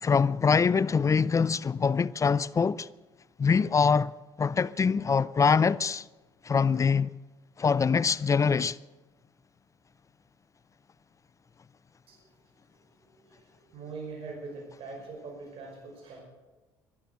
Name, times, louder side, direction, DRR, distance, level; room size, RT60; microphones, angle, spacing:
voice 1, 0.0-2.9 3.4-4.1 4.4-6.0 6.4-7.1 7.6-8.8, left 5 dB, 30° left, 0.4 m, -24 dB
voice 2, 13.0-13.4 13.7-16.2, right 4 dB, 60° right, 5.8 m, -42 dB
14.5 x 12.0 x 8.0 m
hypercardioid pair, 65°, 11 cm